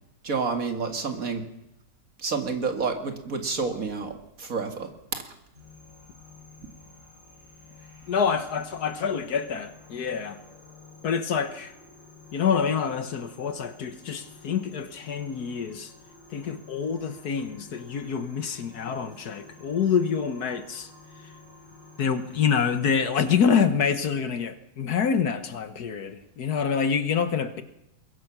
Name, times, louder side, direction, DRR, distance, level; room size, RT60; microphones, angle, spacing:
voice 1, 0.2-1.4 2.2-5.3, right 4 dB, 50° right, 2.3 m, -29 dB
sound 1, 5.5-23.5, left 3 dB, 30° right, 8.0 m, -51 dB
voice 2, 8.1-10.4 11.0-11.7 12.3-15.9 16.3-20.9 22.0-27.6, left 6 dB, 60° left, 1.6 m, -26 dB
22.0 x 22.0 x 6.1 m
omnidirectional pair, 1.9 m